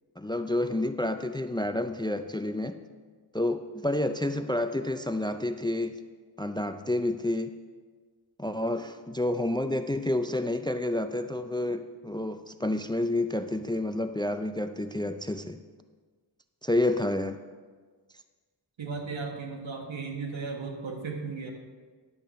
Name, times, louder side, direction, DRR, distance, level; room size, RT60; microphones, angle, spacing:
voice 1, 0.2-2.8 3.3-6.0 6.4-7.5 8.4-15.6 16.6-17.4, left 1 dB, 10° left, 9 dB, 0.3 m, -29 dB
voice 2, 18.8-21.5, right 4 dB, 80° right, 2 dB, 1.5 m, -35 dB
11.0 x 7.8 x 4.2 m, 1.5 s
wide cardioid pair, 65°, 45 cm